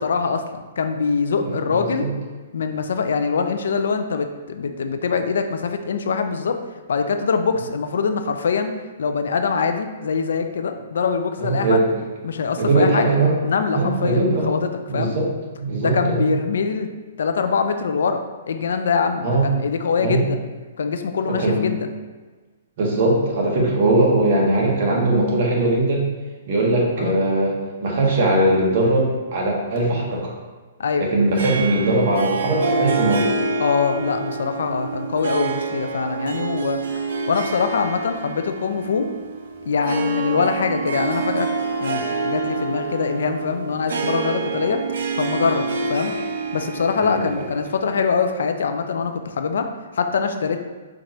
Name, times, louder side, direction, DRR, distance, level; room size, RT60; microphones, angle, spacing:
voice 1, 0.0-2.1 2.5-6.6 6.9-8.7 9.0-11.8 12.2-13.2 13.4-15.1 15.8-16.9 17.2-20.4 20.8-21.9 27.0-27.2 30.8-31.1 33.6-36.8 37.3-39.1 39.7-41.5 41.8-44.8 45.2-46.1 46.5-50.6, left 5 dB, 75° left, 7 dB, 0.4 m, -23 dB
voice 2, 1.4-2.1 11.4-11.8 12.6-13.3 13.7-14.5 14.9-15.3 15.6-16.3 19.2-19.5 20.0-20.2 21.3-21.6 22.8-26.0 26.5-30.3 31.0-33.3 47.0-47.2, right 2 dB, 40° right, -2 dB, 1.1 m, -20 dB
Harp, 31.4-48.1, right 4 dB, 60° right, 0.6 m, -27 dB
4.6 x 2.5 x 4.2 m, 1.3 s
hypercardioid pair, 170°, 0 cm